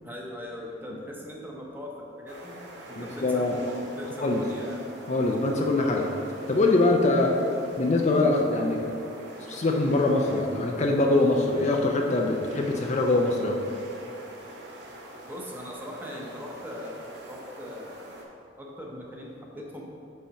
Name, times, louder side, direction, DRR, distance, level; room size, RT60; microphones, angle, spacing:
voice 1, 0.0-1.9 2.2-2.6 2.9-5.0 15.2-18.1 18.6-19.8, left 1 dB, 10° right, -2 dB, 0.9 m, -40 dB
sound 1, 2.3-18.2, right 1 dB, 65° right, 1.1 m, -45 dB
voice 2, 3.2-3.5 4.2-4.4 5.1-6.1 6.5-7.3 7.8-8.9 9.5-13.6, left 2 dB, 40° left, 1 dB, 0.5 m, -23 dB
5.6 x 4.2 x 6.2 m, 2.5 s
head